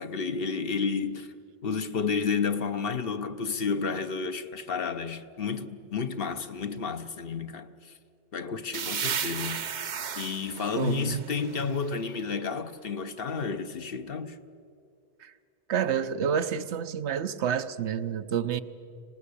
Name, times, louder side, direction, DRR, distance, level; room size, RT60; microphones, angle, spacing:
voice 1, 0.0-1.3 1.6-7.9 8.3-9.6 10.2-14.4, left 5 dB, 60° left, 1.0 m, -31 dB
sound 1, 8.7-12.3, right 7 dB, 50° right, 0.7 m, -35 dB
voice 2, 10.7-11.2 15.2-15.3 15.7-18.6, right 8 dB, 85° right, 1.1 m, -29 dB
25.5 x 19.0 x 8.4 m
omnidirectional pair, 1.1 m